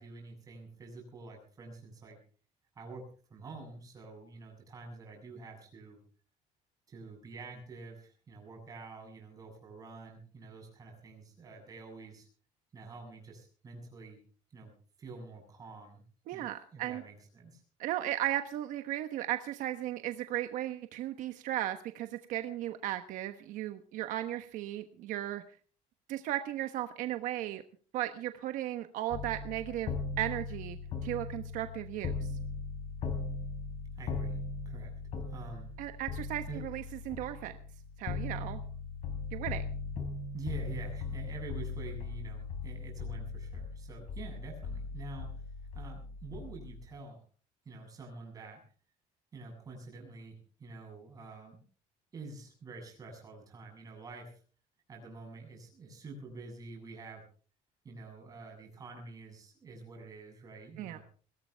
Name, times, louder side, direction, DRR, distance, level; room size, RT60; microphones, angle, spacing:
voice 1, 0.0-2.2 2.8-6.0 6.9-12.3 12.7-14.2 14.5-14.7 15.0-16.0 16.3-17.6 34.0-34.4 34.6-34.9 35.3-35.7 36.5-36.6 40.3-45.4 45.7-47.2 47.6-48.6 49.3-51.6 52.1-54.4 54.9-57.2 57.8-61.0, right 3 dB, 25° right, 1 dB, 7.5 m, -47 dB
voice 2, 16.3-17.0 17.8-25.4 26.1-27.6 27.9-32.3 35.8-37.6 38.0-38.6 39.3-39.6 60.8-61.0, right 13 dB, 70° right, 8 dB, 1.2 m, -36 dB
sound 1, 29.1-46.9, left 4 dB, 50° left, 4.6 m, -39 dB
21.5 x 17.5 x 3.5 m, 0.42 s
cardioid pair, 170°, 14 cm